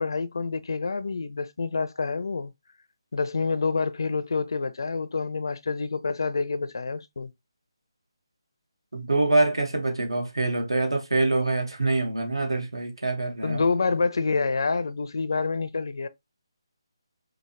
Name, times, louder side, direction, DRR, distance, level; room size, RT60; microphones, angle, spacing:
voice 1, 0.0-2.5 3.1-7.3 13.4-16.1, left 4 dB, 60° left, 0.4 m, -27 dB
voice 2, 8.9-13.6, right 2 dB, 75° right, 1.2 m, -25 dB
5.0 x 2.0 x 2.9 m
figure-of-eight pair, 150°, 3 cm